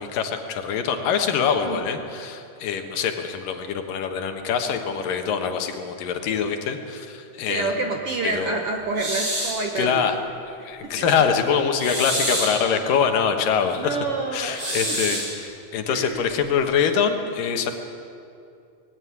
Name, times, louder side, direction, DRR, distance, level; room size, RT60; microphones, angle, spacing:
voice 1, 0.0-7.7 8.2-8.6 9.8-10.2 10.5-14.0 14.3-17.7, left 7 dB, 75° left, 5 dB, 3.0 m, -24 dB
voice 2, 7.5-10.1 11.0-11.1 13.8-15.2 15.9-16.2, right 3 dB, 60° right, 3 dB, 1.6 m, -28 dB
sound 1, 9.0-9.6 11.8-12.6 14.5-15.3, right 1 dB, 30° right, 8.5 m, -27 dB
20.0 x 16.0 x 9.6 m, 2.5 s
omnidirectional pair, 4.0 m